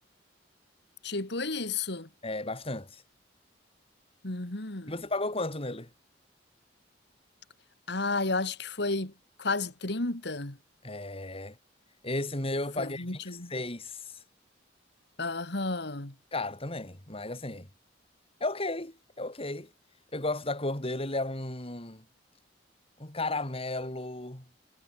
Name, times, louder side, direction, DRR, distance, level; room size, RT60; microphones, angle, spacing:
voice 1, 1.0-2.1 4.2-4.9 7.9-9.1 9.4-10.6 12.8-13.5 15.2-16.1, left 3 dB, 65° left, 2.6 m, -32 dB
voice 2, 2.2-3.0 4.9-5.9 10.8-11.6 12.0-14.1 16.3-17.7 18.4-19.7 20.1-22.0 23.0-24.4, left 2 dB, 30° left, 4.1 m, -34 dB
head